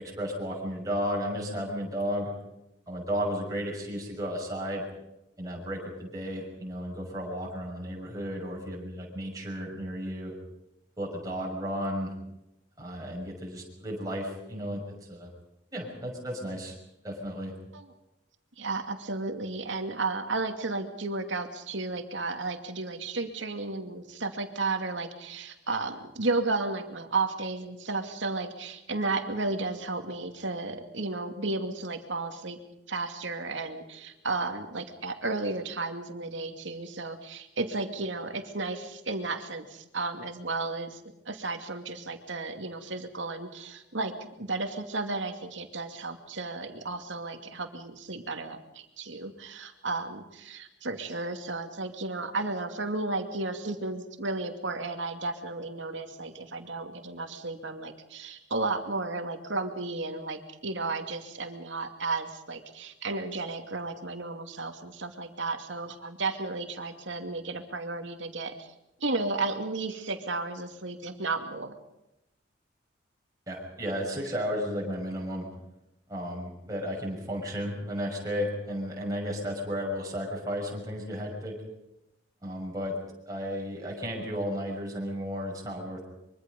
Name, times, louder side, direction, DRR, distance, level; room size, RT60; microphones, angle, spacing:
voice 1, 0.0-2.3 2.9-4.8 5.4-10.3 11.0-12.1 12.8-15.3 15.7-16.7 17.0-17.5 73.5-75.5 76.1-81.6 82.4-83.0 83.3-86.0, equal, 20° right, -3 dB, 6.4 m, -33 dB
voice 2, 18.6-32.6 32.9-41.0 41.3-44.1 44.4-68.7 69.0-71.8, right 3 dB, 80° right, 6 dB, 2.5 m, -33 dB
24.5 x 24.0 x 5.4 m, 0.91 s
head